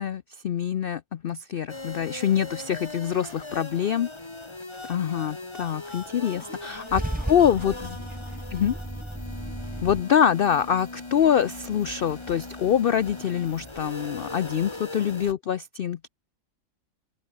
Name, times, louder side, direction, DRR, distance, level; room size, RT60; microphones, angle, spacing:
voice 1, 0.0-4.1 4.9-7.0 7.3-7.7 8.5-8.7 9.8-16.1, left 9 dB, 60° left, 0.6 m, -25 dB
sound 1, 1.7-15.3, left 2 dB, 20° left, 1.8 m, -40 dB
voice 2, 6.2-8.8, right 1 dB, 50° right, 7.2 m, -50 dB
Car / Engine starting / Idling, 6.5-10.0, right 1 dB, 5° right, 0.9 m, -34 dB
open air
omnidirectional pair, 1.5 m